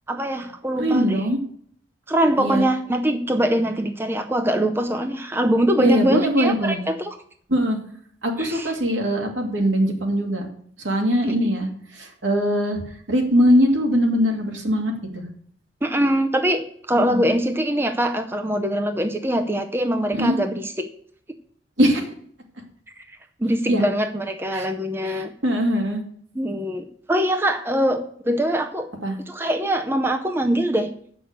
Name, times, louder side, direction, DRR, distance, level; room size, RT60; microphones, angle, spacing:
voice 1, 0.1-1.3 2.1-7.2 8.4-8.7 11.3-11.4 15.8-20.9 23.4-25.3 26.4-28.9 29.3-30.9, equal, 10° right, 6 dB, 0.5 m, -23 dB
voice 2, 0.8-1.4 2.4-2.6 5.8-6.8 7.5-7.8 8.2-10.5 10.8-11.7 12.0-12.8 13.1-15.2 17.0-17.2 20.1-20.4 21.8-22.0 23.7-23.8 24.5-24.7 25.0-26.0 29.0-29.2, equal, 80° right, 2 dB, 2.2 m, -21 dB
7.8 x 6.1 x 8.0 m, 0.62 s
head